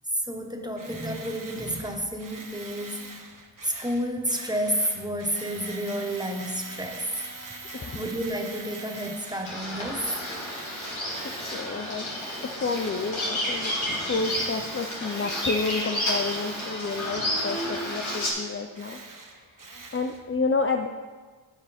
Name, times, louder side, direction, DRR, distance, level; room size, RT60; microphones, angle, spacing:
voice 1, 0.2-3.1 3.6-7.1 7.5-10.1, equal, 10° right, 3 dB, 1.3 m, -31 dB
Tools, 0.8-9.5 9.9-11.8 12.1-20.2, right 3 dB, 40° right, 1.5 m, -43 dB
Bird vocalization bird call bird song, 9.4-18.3, left 1 dB, 70° left, 2.6 m, -31 dB
voice 2, 11.5-12.1 12.4-19.0 19.3-19.4 19.9-20.9, left 4 dB, 25° left, 4 dB, 0.6 m, -30 dB
13.5 x 5.2 x 3.5 m, 1.5 s
cardioid pair, 40°, 50 cm